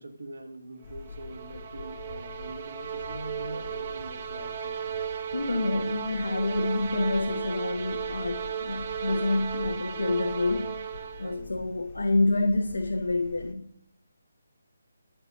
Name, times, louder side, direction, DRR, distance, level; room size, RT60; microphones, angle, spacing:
voice 1, 0.0-5.0 11.3-11.6, right 2 dB, 65° right, 1.2 m, -43 dB
sound 1, 0.8-13.5, left 5 dB, 25° left, 0.9 m, -46 dB
sound 2, 0.9-11.5, right 8 dB, 35° right, 0.6 m, -35 dB
voice 2, 5.3-10.8 11.2-13.7, left 2 dB, 75° left, 0.7 m, -28 dB
8.9 x 4.6 x 5.2 m
figure-of-eight pair, 150°, 0 cm